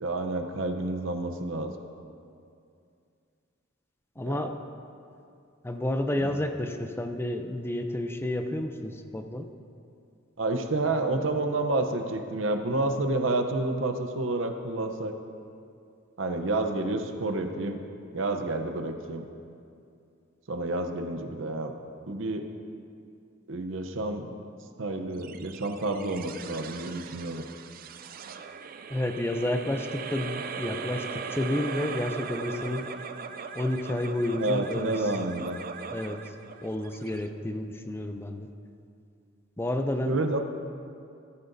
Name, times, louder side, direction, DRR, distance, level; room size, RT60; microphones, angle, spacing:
voice 1, 0.0-1.7 4.2-4.5 6.2-6.4 10.4-15.1 16.2-17.8 18.1-19.3 20.5-21.7 22.1-22.5 23.5-24.4 24.8-27.5 34.4-35.6 40.0-40.4, right 2 dB, 70° right, 6 dB, 0.8 m, -29 dB
voice 2, 4.2-4.6 5.6-9.5 28.9-32.9 33.5-34.9 35.9-36.2 36.6-38.5 39.6-40.2, left 1 dB, 10° left, 6 dB, 0.5 m, -30 dB
sound 1, 25.2-37.8, right 6 dB, 45° right, 0.5 m, -39 dB
15.0 x 13.5 x 2.7 m, 2.4 s
head